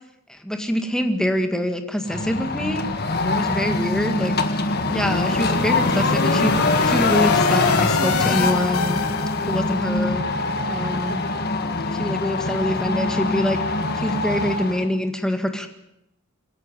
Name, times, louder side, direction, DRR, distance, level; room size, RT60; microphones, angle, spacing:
voice 1, 0.3-2.9 3.2-4.3 4.9-9.0 9.5-10.2 10.6-11.2 11.9-13.6 14.0-15.7, equal, 5° left, 6 dB, 1.9 m, -25 dB
sound 1, 2.1-14.9, left 3 dB, 45° left, 1.7 m, -23 dB
sound 2, 4.7-9.7, left 5 dB, 85° left, 1.4 m, -28 dB
26.5 x 11.0 x 9.8 m, 0.84 s
head